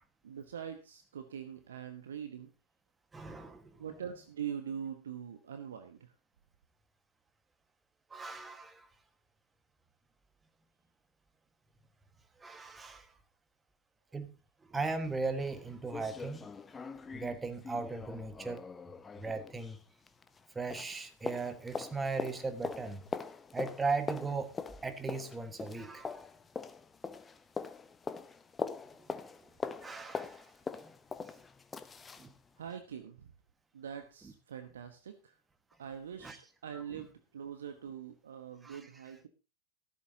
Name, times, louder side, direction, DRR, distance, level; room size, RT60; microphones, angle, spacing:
voice 1, 0.2-2.5 3.8-6.1 32.6-33.3 33.7-35.3 35.8-39.3, right 8 dB, 65° right, 8 dB, 1.1 m, -43 dB
voice 2, 3.1-3.8 8.1-8.9 12.4-13.1 14.1-14.3 14.7-16.5 16.9-18.7 19.2-19.8 20.5-23.0 23.5-24.5 24.8-26.2 29.0-29.3 29.8-30.5 30.8-30.9 31.3-31.4 32.2-32.3 36.2-36.4 36.7-37.0 38.6-38.8, right 4 dB, 10° right, 9 dB, 1.6 m, -38 dB
sound 1, 15.0-15.1 15.5-15.6 15.9-20.5 20.7-32.3 32.7-32.8, left 5 dB, 15° left, 0.8 m, -42 dB
14.5 x 12.5 x 2.8 m, 0.31 s
figure-of-eight pair, 90°, 0 cm